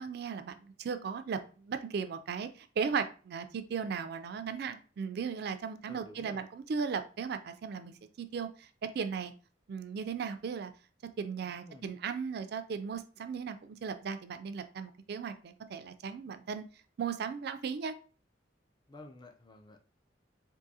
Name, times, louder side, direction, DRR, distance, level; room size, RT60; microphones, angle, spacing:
voice 1, 0.0-8.7 8.9-9.3 9.7-10.7 11.2-16.6 17.0-17.9, right 6 dB, 55° right, 10 dB, 0.3 m, -37 dB
voice 2, 5.9-6.4 11.4-11.9 18.9-19.8, left 1 dB, 25° left, 5 dB, 0.4 m, -51 dB
3.7 x 2.6 x 2.7 m, 0.37 s
head